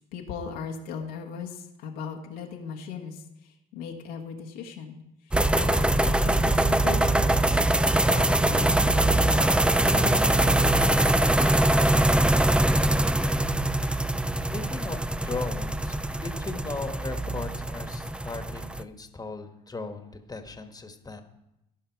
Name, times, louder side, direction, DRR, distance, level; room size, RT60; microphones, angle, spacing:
voice 1, 0.0-5.0 5.2-7.6 8.0-12.1, left 6 dB, 75° left, 0 dB, 1.4 m, -39 dB
sound 1, 5.3-18.8, right 1 dB, 5° right, 0.4 m, -23 dB
voice 2, 14.5-21.2, left 3 dB, 20° left, 6 dB, 1.4 m, -37 dB
16.0 x 5.6 x 4.5 m, 0.87 s
hypercardioid pair, 70°, 21 cm